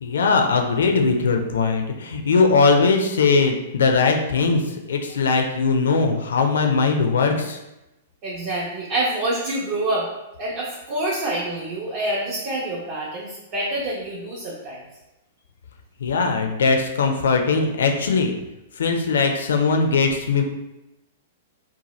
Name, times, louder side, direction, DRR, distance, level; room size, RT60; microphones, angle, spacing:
voice 1, 0.0-4.6 4.9-7.6 16.0-18.4 18.8-20.4, left 4 dB, 65° left, 4 dB, 0.4 m, -20 dB
voice 2, 8.2-10.1 10.4-14.8, right 1 dB, 35° right, -5 dB, 0.6 m, -26 dB
2.7 x 2.1 x 3.0 m, 0.96 s
figure-of-eight pair, 105°, 0 cm